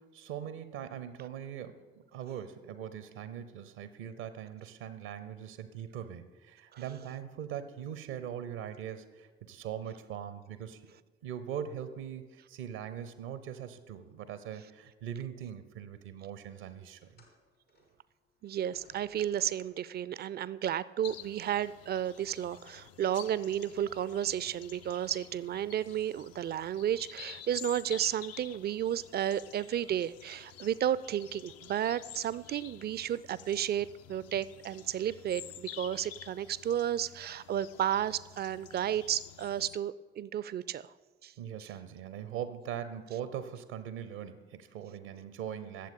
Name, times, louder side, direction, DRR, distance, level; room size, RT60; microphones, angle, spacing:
voice 1, 0.0-1.8 2.1-10.9 11.2-17.2 41.4-45.9, right 9 dB, 70° right, 13 dB, 0.7 m, -41 dB
sound 1, 17.0-20.1 21.0-21.2 22.1-22.2, left 3 dB, 85° left, 1.7 m, -65 dB
voice 2, 18.4-40.9 41.2-41.3, right 10 dB, 35° right, 18 dB, 0.4 m, -32 dB
sound 2, 21.0-39.8, left 11 dB, 55° left, 0.5 m, -50 dB
20.0 x 7.4 x 3.7 m, 1.3 s
figure-of-eight pair, 40°, 31 cm